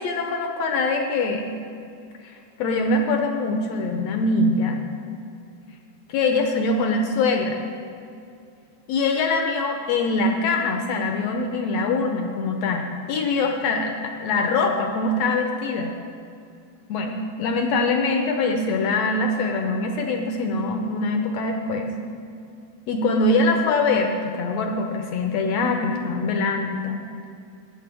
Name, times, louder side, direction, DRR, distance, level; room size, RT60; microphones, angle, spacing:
voice 1, 0.0-1.6 2.2-4.9 6.1-7.6 8.9-16.0 16.9-21.9 22.9-27.1, left 3 dB, 80° left, 3 dB, 1.5 m, -23 dB
15.0 x 9.1 x 3.3 m, 2.5 s
omnidirectional pair, 3.6 m